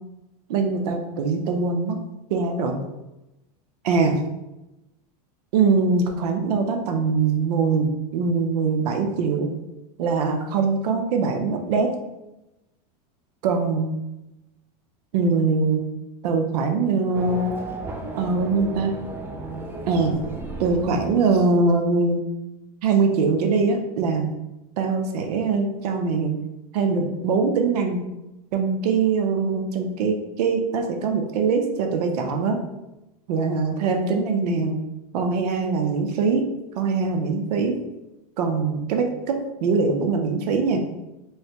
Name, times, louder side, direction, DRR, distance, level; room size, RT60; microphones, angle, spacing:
voice 1, 0.5-2.0 2.3-2.8 3.8-4.2 5.5-9.5 10.0-11.9 13.4-13.9 15.1-15.8 16.2-17.5 18.1-18.9 19.9-20.1 20.6-22.2 22.8-24.3 24.8-26.4 26.7-28.0 28.5-32.6 33.3-34.8 35.1-36.4 36.7-37.8 38.4-40.8, right 4 dB, 80° right, 4 dB, 0.6 m, -22 dB
Race car auto racing / Accelerating revving vroom, 17.1-21.8, right 2 dB, 10° right, 0.4 m, -34 dB
3.1 x 3.1 x 2.9 m, 0.96 s
supercardioid pair, 130°, 20 cm